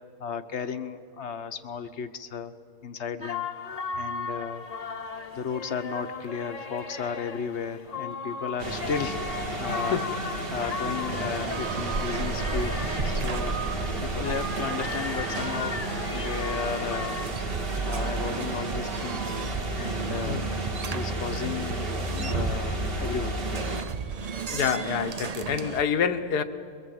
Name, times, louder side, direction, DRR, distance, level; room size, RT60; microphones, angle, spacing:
voice 1, 0.2-2.5 2.8-3.5 3.9-4.6 5.3-10.0 10.5-13.6 14.0-15.8 16.1-17.2 17.8-19.3 19.8-20.5 20.9-23.4, left 6 dB, 50° left, 9 dB, 1.1 m, -34 dB
sound 1, 3.2-17.3, left 3 dB, 30° left, 1.0 m, -36 dB
sound 2, 8.6-23.8, right 2 dB, 35° right, 1.6 m, -32 dB
sound 3, 11.1-25.8, right 6 dB, 80° right, 0.3 m, -36 dB
voice 2, 24.5-26.4, left 7 dB, 80° left, 9 dB, 1.6 m, -27 dB
25.5 x 22.5 x 7.9 m, 2.2 s
omnidirectional pair, 1.7 m